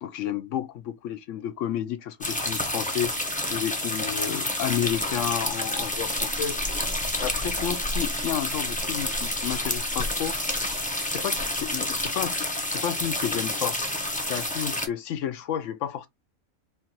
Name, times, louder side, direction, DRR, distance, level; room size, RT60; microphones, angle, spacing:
voice 1, 0.0-3.1 3.5-6.6 7.2-10.4 11.0-13.8 14.3-16.1, left 10 dB, 70° left, 0.8 m, -31 dB
sound 1, 2.2-14.9, left 1 dB, 10° left, 0.5 m, -29 dB
4.6 x 2.4 x 2.8 m
omnidirectional pair, 1.5 m